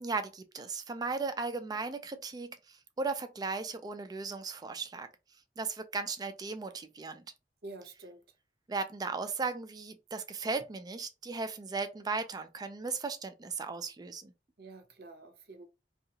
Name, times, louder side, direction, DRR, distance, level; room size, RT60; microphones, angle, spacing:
voice 1, 0.0-2.6 3.0-5.1 5.6-7.2 8.7-14.3, right 4 dB, 20° right, 0.3 m, -36 dB
voice 2, 7.6-8.2 14.6-15.7, right 2 dB, 60° right, 0.6 m, -48 dB
2.7 x 2.4 x 2.7 m
head